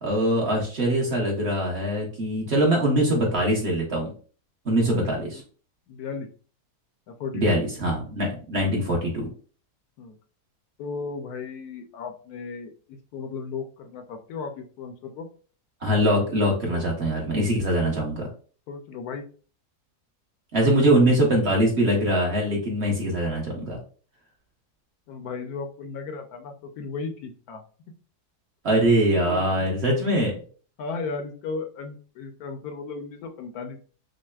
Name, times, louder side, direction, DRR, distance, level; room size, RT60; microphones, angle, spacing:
voice 1, 0.0-4.1 4.6-5.4 7.3-9.3 15.8-18.3 20.5-23.8 28.6-30.4, right 1 dB, 45° right, -1 dB, 1.1 m, -23 dB
voice 2, 2.4-3.0 4.9-5.4 5.9-6.3 7.1-7.6 10.0-10.2 10.8-15.3 16.7-16.9 17.8-18.0 18.7-19.2 25.1-27.6 29.1-29.5 30.8-33.8, left 4 dB, 75° left, 6 dB, 1.0 m, -36 dB
6.3 x 2.1 x 2.3 m, 0.40 s
omnidirectional pair, 1.7 m